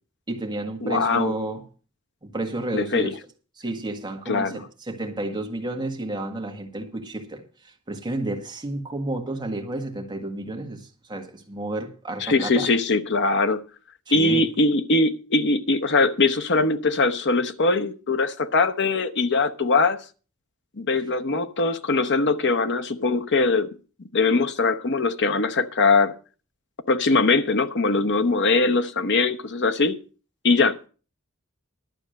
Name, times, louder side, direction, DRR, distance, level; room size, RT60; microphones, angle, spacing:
voice 1, 0.3-1.6 2.2-3.2 3.6-12.7 14.1-14.5, right 2 dB, 20° right, 1.7 m, -31 dB
voice 2, 0.8-1.3 2.7-3.1 4.3-4.7 12.2-13.6 14.1-20.0 20.8-23.7 24.1-26.1 26.9-30.0 30.4-30.9, left 3 dB, 55° left, 0.9 m, -21 dB
12.0 x 7.3 x 6.4 m
head